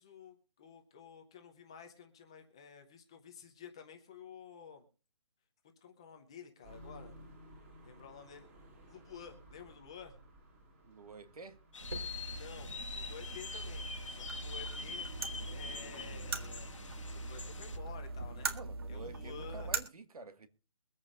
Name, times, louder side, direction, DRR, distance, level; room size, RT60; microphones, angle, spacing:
voice 1, 0.0-4.9 5.8-7.2 7.8-8.5 8.8-10.1 12.3-15.1 15.4-16.7 17.1-18.5 18.9-19.8, left 7 dB, 10° left, 0.6 m, -52 dB
sound 1, 6.6-18.5, right 1 dB, 20° right, 2.6 m, -56 dB
voice 2, 10.9-11.6 18.5-20.5, right 3 dB, 85° right, 1.8 m, -49 dB
sound 2, 11.7-17.8, left 4 dB, 55° left, 1.3 m, -45 dB
sound 3, 11.8-19.8, right 3 dB, 40° right, 1.7 m, -41 dB
23.0 x 8.7 x 2.5 m
hypercardioid pair, 175°, 19 cm